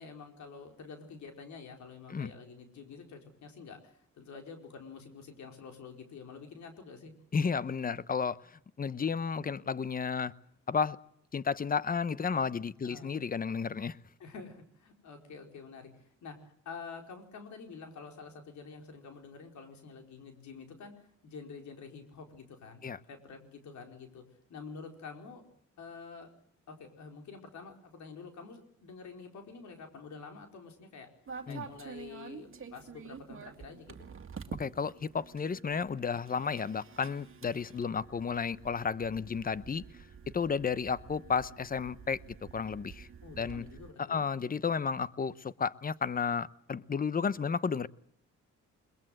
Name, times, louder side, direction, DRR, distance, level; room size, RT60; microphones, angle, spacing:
voice 1, 0.0-7.1 12.8-13.1 14.2-24.2 24.5-25.4 25.8-26.3 26.7-31.1 31.5-33.9 43.2-44.2, left 5 dB, 70° left, 4 dB, 4.7 m, -48 dB
voice 2, 7.3-8.4 8.8-10.3 10.7-11.0 11.3-14.0 22.8-23.0 31.5-31.6 34.6-39.8 40.3-42.2 42.5-43.1 43.4-43.6 44.0-47.9, left 6 dB, 30° left, 17 dB, 0.9 m, -32 dB
sound 1, 31.3-43.9, right 6 dB, 45° right, 2.3 m, -48 dB
21.5 x 21.5 x 7.8 m, 0.65 s
cardioid pair, 90°, 30 cm